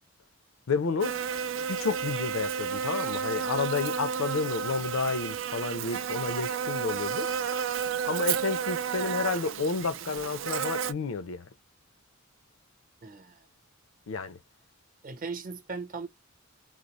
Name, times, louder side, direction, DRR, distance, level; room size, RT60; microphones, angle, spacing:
voice 1, 0.7-1.1 1.7-7.3 8.0-11.5 14.1-14.4, left 4 dB, 75° left, 0.6 m, -31 dB
Buzz, 1.0-10.9, right 7 dB, 65° right, 0.4 m, -32 dB
voice 2, 13.0-13.5 15.0-16.1, right 4 dB, 40° right, 0.9 m, -38 dB
3.9 x 2.0 x 3.0 m
head